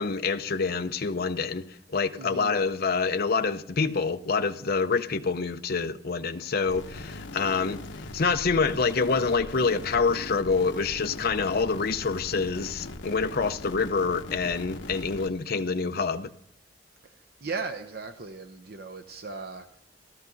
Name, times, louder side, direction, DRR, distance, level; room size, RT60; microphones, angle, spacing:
voice 1, 0.0-16.3, left 4 dB, 55° left, 0.7 m, -27 dB
voice 2, 2.2-2.6 17.0-19.8, right 4 dB, 60° right, 0.8 m, -38 dB
sound 1, 6.7-15.3, left 2 dB, 85° left, 1.0 m, -40 dB
15.0 x 13.5 x 4.0 m
head